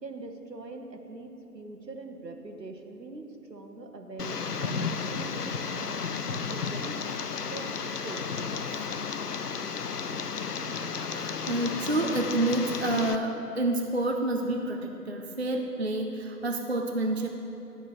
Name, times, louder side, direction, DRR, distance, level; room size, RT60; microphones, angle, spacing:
voice 1, 0.0-6.0 6.3-7.0 7.5-7.7 8.0-8.5, right 3 dB, 85° right, 4 dB, 1.2 m, -42 dB
Tick, 4.2-13.2, left 5 dB, 70° left, 0.6 m, -33 dB
voice 2, 11.0-17.3, right 2 dB, 45° right, 3 dB, 0.4 m, -29 dB
12.0 x 4.4 x 6.6 m, 2.9 s
figure-of-eight pair, 155°, 49 cm